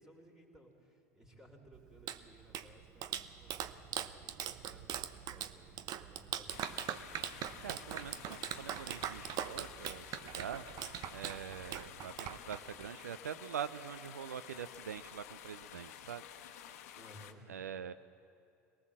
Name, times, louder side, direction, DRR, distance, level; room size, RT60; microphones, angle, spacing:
voice 1, 0.0-6.8 17.0-17.5, equal, 5° right, 1 dB, 3.8 m, -60 dB
Clapping, 1.7-12.9, right 10 dB, 45° right, 0.8 m, -42 dB
sound 1, 6.5-17.3, left 10 dB, 65° left, 1.1 m, -52 dB
voice 2, 7.6-10.7 11.1-16.7 17.5-17.9, right 8 dB, 85° right, 13 dB, 0.5 m, -44 dB
22.0 x 18.5 x 7.4 m, 2.5 s
hypercardioid pair, 80°, 9 cm